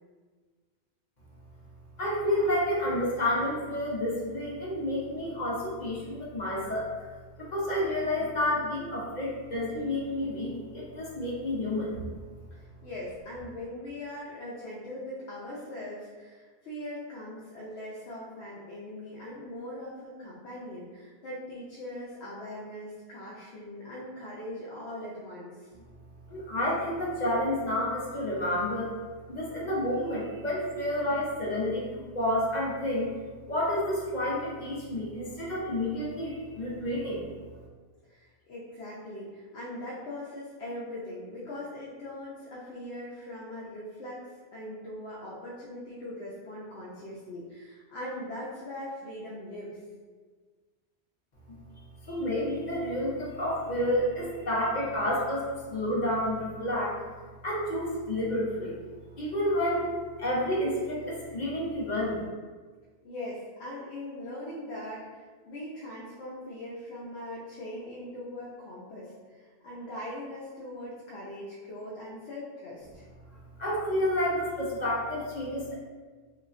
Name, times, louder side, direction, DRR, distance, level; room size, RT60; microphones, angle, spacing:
voice 1, 2.0-6.9 7.4-12.0 26.3-28.9 29.3-31.9 32.1-33.1 33.5-37.3 52.1-57.0 57.4-58.8 59.2-59.9 60.2-62.2 73.6-75.7, left 1 dB, 50° left, -5 dB, 0.6 m, -30 dB
voice 2, 12.5-25.7 38.1-49.8 63.0-73.1, left 1 dB, 80° left, -7 dB, 0.9 m, -41 dB
3.1 x 2.3 x 2.4 m, 1.5 s
omnidirectional pair, 1.1 m